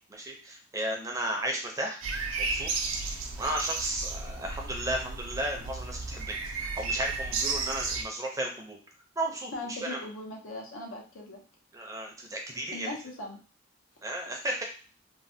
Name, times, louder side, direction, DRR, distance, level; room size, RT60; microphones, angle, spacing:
voice 1, 0.1-2.0 2.4-2.7 3.4-8.8 9.2-10.0 11.7-12.9 14.0-14.6, right 1 dB, 15° right, 1 dB, 0.5 m, -34 dB
sound 1, 2.0-8.0, right 4 dB, 85° right, 0.5 m, -33 dB
voice 2, 9.5-11.4 12.7-13.4, left 1 dB, 80° left, 0 dB, 0.7 m, -39 dB
3.1 x 2.1 x 2.6 m, 0.37 s
head